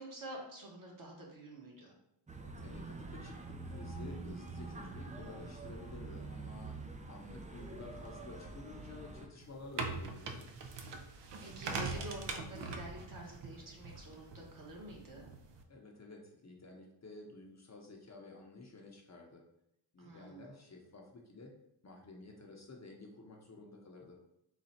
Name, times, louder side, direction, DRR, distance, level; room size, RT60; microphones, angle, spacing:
voice 1, 0.0-1.9 7.3-7.5 11.4-15.3 20.0-20.5, right 1 dB, 40° right, -2 dB, 1.3 m, -48 dB
sound 1, 2.3-9.3, right 3 dB, 15° right, 0.5 m, -46 dB
voice 2, 2.6-6.8 7.1-10.5 15.7-19.4 19.9-21.5 21.8-24.2, left 3 dB, 35° left, 0 dB, 0.8 m, -52 dB
sound 2, 9.4-15.6, right 4 dB, 60° right, 0.7 m, -43 dB
4.0 x 2.3 x 4.3 m, 0.79 s
cardioid pair, 75°, 48 cm